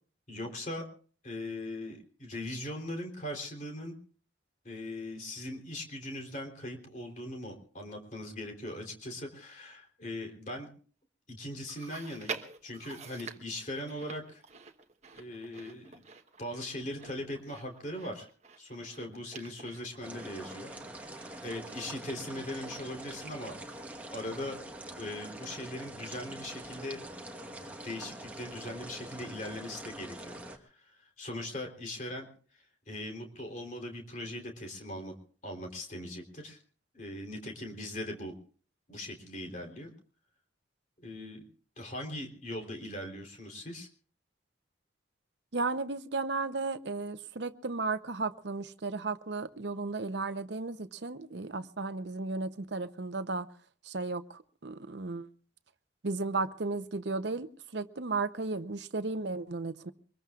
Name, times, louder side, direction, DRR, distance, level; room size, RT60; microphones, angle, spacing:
voice 1, 0.3-0.8 1.2-3.9 4.6-10.7 11.3-14.4 15.1-16.0 16.4-18.3 18.6-23.5 24.1-24.6 24.9-27.0 27.4-32.3 32.5-35.1 35.4-36.6 36.9-38.3 38.9-39.9 41.0-41.4 41.8-43.9, left 1 dB, 40° left, 2 dB, 3.5 m, -40 dB
Chewing mastication, 11.7-25.2 25.5-25.6 26.5-26.6, right 5 dB, 35° right, 1.1 m, -49 dB
sound 1, 20.0-30.6, right 1 dB, 10° right, 1.3 m, -44 dB
voice 2, 45.5-53.5 53.8-55.3 56.0-59.9, right 3 dB, 70° right, 12 dB, 0.8 m, -34 dB
24.5 x 21.5 x 2.4 m, 0.44 s
head